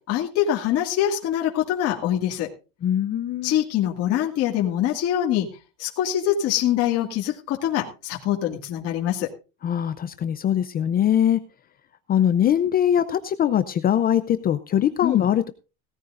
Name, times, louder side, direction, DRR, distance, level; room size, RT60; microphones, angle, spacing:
voice 1, 0.1-2.5 3.4-5.5 5.8-9.3 15.0-15.2, left 11 dB, 45° left, 0 dB, 2.1 m, -24 dB
voice 2, 2.8-3.5 9.6-11.4 12.1-15.5, left 10 dB, 25° left, 11 dB, 0.6 m, -22 dB
17.0 x 13.5 x 2.6 m, 0.32 s
cardioid pair, 160°, 35 cm